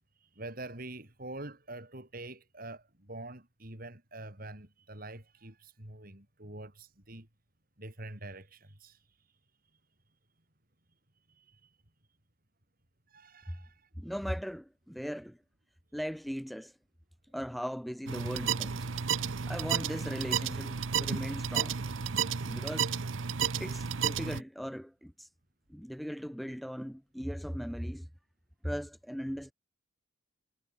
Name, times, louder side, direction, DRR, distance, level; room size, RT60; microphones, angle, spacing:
voice 1, 0.2-7.3 7.8-9.0 11.3-11.8 13.1-13.9, right 2 dB, 50° right, 5.1 m, -46 dB
voice 2, 14.0-15.4 15.9-16.7 17.3-18.9 19.5-21.8 22.4-22.9 23.6-25.3 25.7-28.1 28.6-29.5, equal, ahead, 1.4 m, -38 dB
sound 1, 18.1-24.4, right 7 dB, 85° right, 0.8 m, -32 dB
head